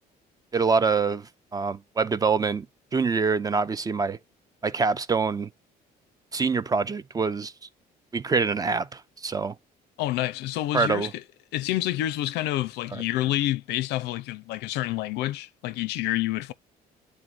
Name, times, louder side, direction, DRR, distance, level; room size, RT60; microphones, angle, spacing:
voice 1, 0.5-2.7 2.9-4.2 4.6-5.5 6.3-7.5 8.1-9.5 10.7-11.1 12.9-13.0, right 4 dB, 20° right, 0.4 m, -25 dB
voice 2, 10.0-11.2 11.5-16.5, left 15 dB, 85° left, 0.5 m, -28 dB
11.0 x 3.8 x 2.4 m
cardioid pair, 110°, 17 cm